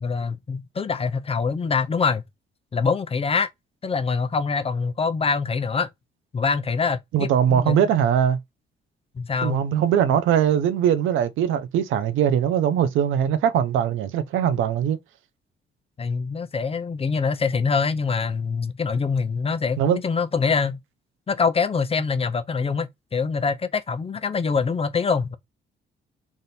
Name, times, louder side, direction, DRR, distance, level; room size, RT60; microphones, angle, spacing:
voice 1, 0.0-2.2 2.7-3.5 3.8-5.9 6.3-7.9 9.2-9.6 16.0-20.8 21.3-25.4, left 5 dB, 30° left, 0.6 m, -24 dB
voice 2, 7.1-8.4 9.4-15.0 19.8-20.0, right 9 dB, 85° right, 0.7 m, -21 dB
3.6 x 2.6 x 4.1 m
cardioid pair, 90°, 20 cm